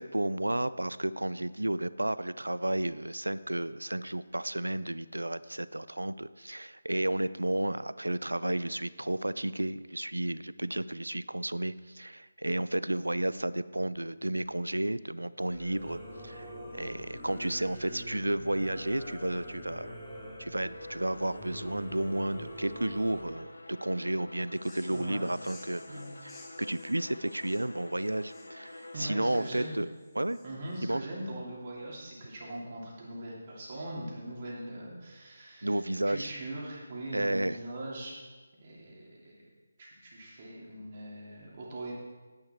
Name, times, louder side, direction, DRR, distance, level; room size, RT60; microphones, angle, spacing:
voice 1, 0.0-20.0 20.4-29.9 30.2-30.4 30.9-31.0 35.6-36.3 37.1-37.6, right 1 dB, 85° right, 16 dB, 0.4 m, -32 dB
Singing / Musical instrument, 15.5-23.2, equal, 5° right, 2.7 m, -45 dB
Bowed string instrument, 20.5-30.0, left 2 dB, 75° left, 1.1 m, -48 dB
sound 1, 24.5-30.8, left 3 dB, 10° left, 1.2 m, -57 dB
voice 2, 24.9-25.3 25.9-26.1 28.9-29.7 30.4-38.1 38.6-39.5 39.8-41.9, right 1 dB, 35° right, -4 dB, 3.2 m, -41 dB
10.0 x 9.8 x 4.6 m, 1.3 s
figure-of-eight pair, 155°, 0 cm